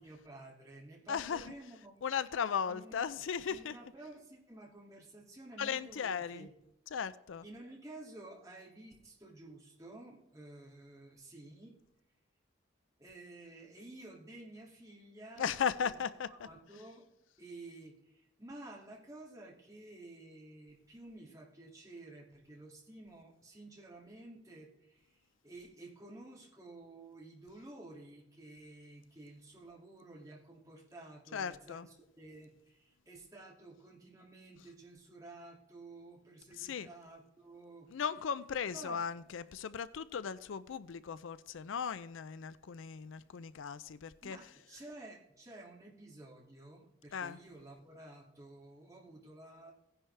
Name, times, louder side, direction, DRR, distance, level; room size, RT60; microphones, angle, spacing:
voice 1, 0.0-2.0 2.6-3.1 3.5-6.5 7.4-11.8 13.0-16.0 16.3-17.1 17.4-37.9 38.7-39.0 44.2-49.7, right 2 dB, 15° right, 2.3 m, -52 dB
voice 2, 1.1-1.5 2.0-3.8 5.6-6.5 6.9-7.4 15.4-16.3 31.3-31.9 36.6-36.9 37.9-44.4 47.1-47.4, left 7 dB, 85° left, 0.4 m, -37 dB
16.0 x 10.0 x 3.3 m
head